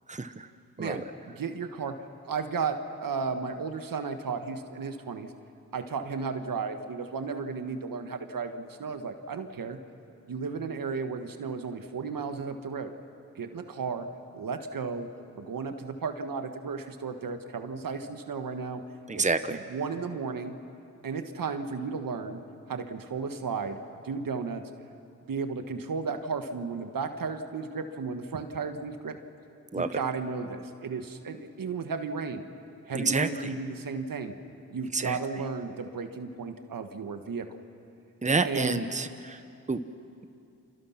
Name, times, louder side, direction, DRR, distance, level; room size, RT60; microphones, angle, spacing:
voice 1, 0.1-0.5 0.8-1.0 19.1-19.6 29.7-29.9 32.9-33.5 34.9-35.2 38.2-39.4 39.7-39.8, right 3 dB, 20° right, 10 dB, 1.2 m, -28 dB
voice 2, 1.3-1.9 2.2-5.3 5.7-9.8 10.3-12.9 13.3-14.1 14.3-15.1 15.3-18.8 19.1-19.2 19.5-20.5 21.0-22.4 22.7-24.6 25.3-29.2 29.7-32.4 32.9-34.3 34.7-37.6 38.4-38.8, right 5 dB, 70° right, 7 dB, 1.7 m, -34 dB
29.5 x 25.5 x 5.9 m, 2.6 s
cardioid pair, 45°, 35 cm